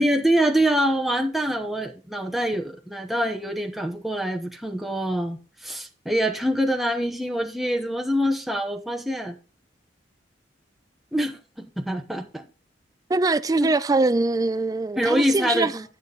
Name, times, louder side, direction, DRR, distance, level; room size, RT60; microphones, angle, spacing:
voice 1, 0.0-9.4 11.1-12.5 13.6-13.7 15.0-15.8, equal, ahead, 0.8 m, -25 dB
voice 2, 13.1-15.7, right 3 dB, 20° right, 0.3 m, -22 dB
10.0 x 6.8 x 3.7 m
head